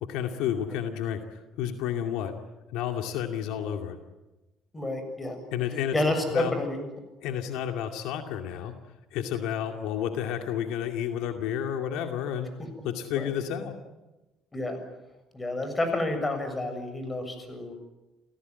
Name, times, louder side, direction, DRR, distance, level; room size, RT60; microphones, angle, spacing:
voice 1, 0.0-2.3 2.7-4.0 5.5-6.5 7.2-8.7 9.1-12.5 12.8-13.8, left 9 dB, 85° left, 5 dB, 2.4 m, -31 dB
voice 2, 4.7-5.4 5.9-6.8 13.2-13.3 14.5-14.8 15.3-17.7, left 2 dB, 20° left, 7 dB, 7.0 m, -29 dB
29.0 x 17.0 x 9.7 m, 1.1 s
cardioid pair, 110°, 0 cm